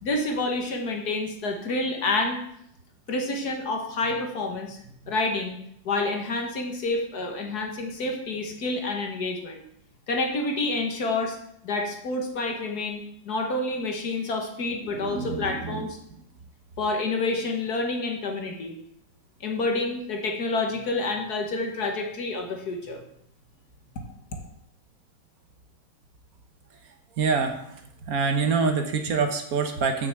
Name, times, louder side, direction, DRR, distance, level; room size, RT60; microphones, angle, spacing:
voice 1, 0.0-2.4 3.1-4.8 5.1-5.6 5.9-9.6 10.1-11.4 11.6-16.0 16.8-18.8 19.4-23.0, left 2 dB, 60° left, 3 dB, 1.9 m, -28 dB
voice 2, 14.9-15.9 27.2-27.6 28.1-30.1, right 5 dB, 60° right, 6 dB, 1.2 m, -25 dB
6.8 x 6.3 x 7.4 m, 0.72 s
omnidirectional pair, 1.9 m